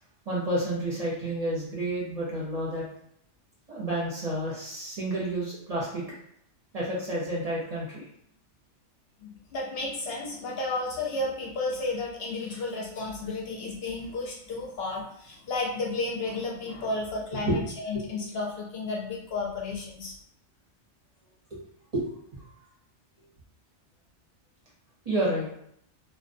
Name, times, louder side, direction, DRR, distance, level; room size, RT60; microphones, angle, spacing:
voice 1, 0.3-2.8 3.7-6.0 6.7-8.0 17.3-17.6 17.9-18.1 21.5-21.6 21.9-22.5 25.0-25.5, right 1 dB, 40° right, -6 dB, 0.6 m, -30 dB
voice 2, 9.2-20.1, left 3 dB, 65° left, -2 dB, 0.7 m, -32 dB
2.3 x 2.1 x 2.5 m, 0.71 s
omnidirectional pair, 1.2 m